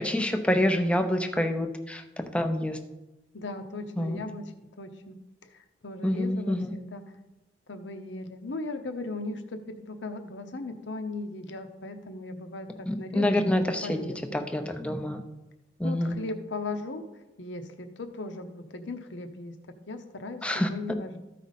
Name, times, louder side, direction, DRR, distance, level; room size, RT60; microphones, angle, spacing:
voice 1, 0.0-2.8 4.0-4.2 6.0-6.7 12.9-14.0 14.3-15.2 15.8-16.2 20.4-20.7, left 1 dB, 5° left, 6 dB, 0.6 m, -27 dB
voice 2, 3.3-4.4 4.8-5.2 5.4-7.0 7.7-13.4 13.8-14.5 15.8-17.0 17.4-21.2, left 2 dB, 75° left, 7 dB, 0.9 m, -38 dB
13.5 x 5.0 x 4.1 m, 1.0 s
head